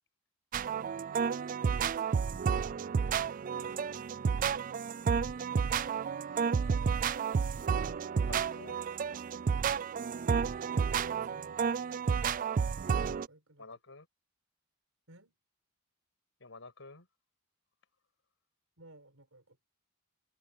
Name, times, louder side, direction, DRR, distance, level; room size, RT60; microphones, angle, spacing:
sound 1, 0.5-13.3, right 6 dB, 40° right, 0.3 m, -31 dB
voice 1, 0.6-2.5 5.5-6.3 10.6-11.6 13.1-13.7 15.1-15.4 18.8-19.7, right 1 dB, 75° right, 5.5 m, -58 dB
voice 2, 3.5-4.0 8.3-8.8 13.6-14.1 16.4-17.1, left 3 dB, 65° left, 6.0 m, -50 dB
head